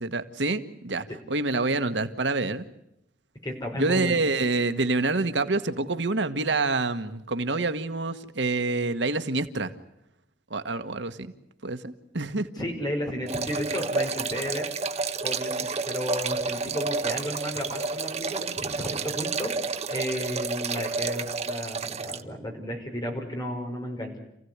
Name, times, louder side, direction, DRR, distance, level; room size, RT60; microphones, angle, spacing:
voice 1, 0.0-2.7 3.7-9.7 10.5-11.3 11.6-12.5, right 3 dB, 90° right, 9 dB, 1.4 m, -27 dB
voice 2, 3.4-4.2 12.5-14.7 15.2-19.5 19.9-24.2, equal, 25° left, 2 dB, 5.6 m, -33 dB
sound 1, 13.3-22.2, right 4 dB, 35° right, 1.0 m, -30 dB
28.0 x 16.0 x 9.5 m, 0.84 s
head